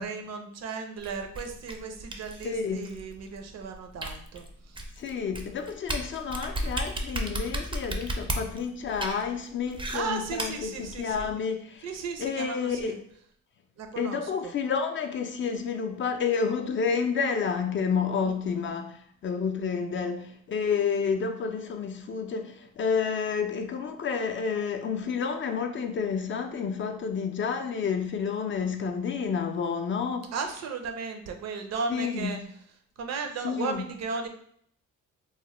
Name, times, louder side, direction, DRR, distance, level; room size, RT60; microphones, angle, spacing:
voice 1, 0.0-4.8 9.9-11.3 11.8-13.0 13.8-14.6 18.2-18.7 20.0-20.1 30.3-32.4 33.0-34.3, right 5 dB, 60° right, 5 dB, 0.6 m, -35 dB
sound 1, 1.0-11.3, right 1 dB, 15° right, 0.4 m, -35 dB
voice 2, 2.4-2.9 5.0-11.9 12.2-12.9 14.0-30.3 31.9-32.3 33.4-33.8, left 6 dB, 40° left, 5 dB, 0.4 m, -30 dB
3.0 x 2.1 x 3.0 m, 0.64 s
cardioid pair, 90°, 30 cm